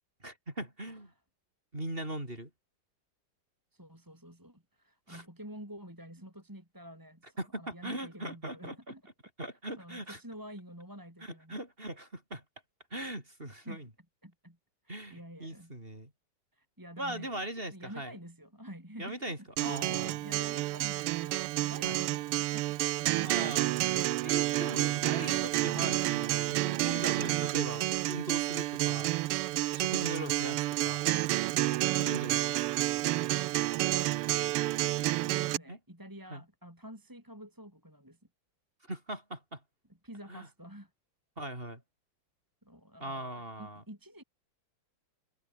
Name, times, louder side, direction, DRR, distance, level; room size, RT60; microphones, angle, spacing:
voice 1, 0.2-1.1 1.7-2.5 5.1-5.2 7.4-8.9 9.4-10.2 11.2-12.4 12.9-13.9 14.9-16.1 17.0-18.1 19.0-20.2 21.8-22.0 23.2-23.7 24.2-29.1 29.7-31.1 32.0-32.6 35.7-35.8 36.3-36.4 38.9-39.6 40.3-40.5 41.4-41.8 43.0-43.8, right 1 dB, 25° right, 6.9 m, -40 dB
voice 2, 3.7-9.0 9.8-11.6 13.6-13.8 14.2-14.6 14.8-15.7 16.5-22.8 35.2-38.2 40.0-40.9 42.6-44.2, equal, 10° right, 4.3 m, -49 dB
Acoustic guitar, 19.6-35.6, right 17 dB, 90° right, 1.6 m, -30 dB
omnidirectional pair, 2.4 m